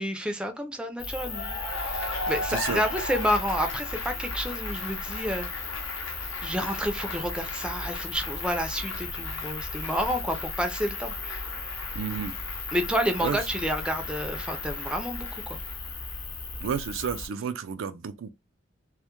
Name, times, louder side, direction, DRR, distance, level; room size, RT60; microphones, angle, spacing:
voice 1, 0.0-5.5 6.4-11.4 12.7-15.6, equal, 5° right, 0.4 m, -30 dB
sound 1, 1.0-17.3, left 3 dB, 45° left, 0.7 m, -36 dB
Cheering / Applause, 1.2-16.1, left 2 dB, 80° left, 0.7 m, -38 dB
voice 2, 2.5-2.8 11.9-12.4 13.2-13.4 16.6-18.3, right 7 dB, 75° right, 0.4 m, -31 dB
2.2 x 2.1 x 2.9 m
head